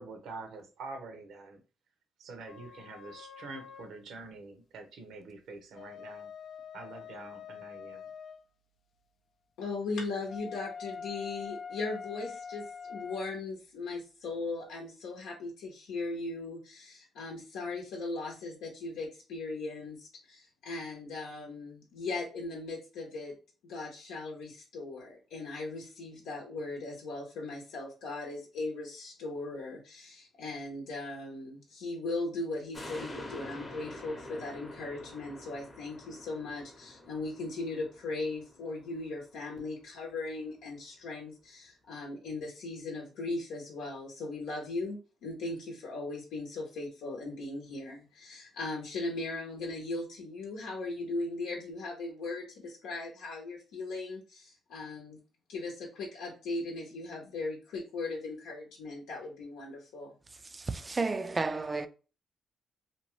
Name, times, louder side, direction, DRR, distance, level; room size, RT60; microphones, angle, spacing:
voice 1, 0.0-1.6 2.2-6.3 6.7-8.1, right 3 dB, 75° right, 0.7 m, -46 dB
sound 1, 2.5-4.0 5.6-8.4 10.3-13.3, left 6 dB, 55° left, 0.3 m, -44 dB
voice 2, 9.6-23.3 23.6-55.2 55.5-60.1, left 3 dB, 90° left, 0.8 m, -38 dB
sound 2, 32.7-39.4 39.8-39.9, left 1 dB, 25° left, 0.7 m, -47 dB
voice 3, 60.4-61.9, right 3 dB, 25° right, 0.3 m, -32 dB
2.7 x 2.2 x 3.0 m
cardioid pair, 90°, 0 cm